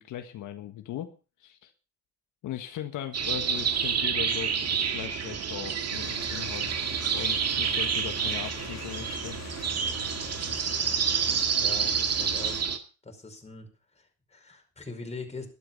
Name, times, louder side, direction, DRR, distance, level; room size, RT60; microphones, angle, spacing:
voice 1, 0.0-1.7 2.4-6.8 7.1-9.4, left 11 dB, 85° left, 6 dB, 1.7 m, -39 dB
sound 1, 3.1-12.8, right 7 dB, 55° right, 2.2 m, -28 dB
sound 2, 5.8-12.6, left 8 dB, 60° left, 2.4 m, -43 dB
voice 2, 11.6-12.7 13.0-13.7 13.9-15.5, left 3 dB, 20° left, 4 dB, 5.1 m, -42 dB
12.5 x 12.5 x 5.4 m, 0.34 s
cardioid pair, 90°, 30 cm